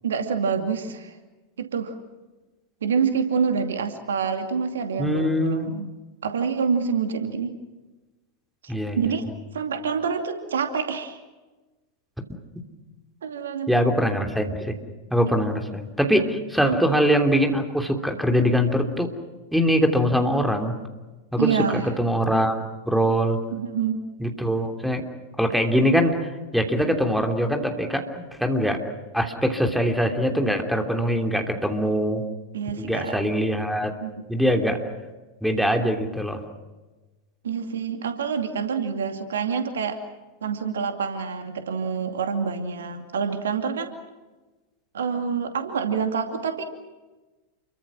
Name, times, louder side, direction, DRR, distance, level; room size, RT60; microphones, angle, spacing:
voice 1, 0.0-1.1 1.6-2.0 2.8-5.9 6.2-7.5 8.6-9.2 9.5-11.2 13.2-13.7 16.6-16.8 21.4-21.8 23.5-24.0 32.5-33.2 34.0-34.3 37.4-40.0 40.4-43.9 44.9-46.6, right 6 dB, 65° right, 6 dB, 2.5 m, -27 dB
voice 2, 5.0-5.8 8.7-9.2 13.7-14.7 15.1-19.1 19.5-20.8 21.3-22.6 22.8-23.4 24.2-25.0 25.4-28.9 29.1-32.2 32.8-33.9 34.3-34.8 35.4-36.4, equal, ahead, 4 dB, 3.1 m, -23 dB
29.0 x 23.5 x 6.2 m, 1.2 s
figure-of-eight pair, 90°, 0 cm